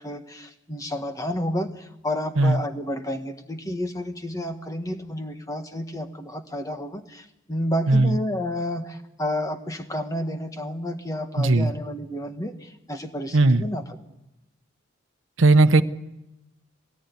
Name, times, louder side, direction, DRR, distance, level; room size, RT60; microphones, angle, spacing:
voice 1, 0.0-14.0, left 1 dB, 15° left, 6 dB, 1.5 m, -30 dB
voice 2, 11.4-11.7 13.3-13.6 15.4-15.8, right 2 dB, 70° right, 10 dB, 0.9 m, -17 dB
22.5 x 18.0 x 9.6 m, 0.94 s
head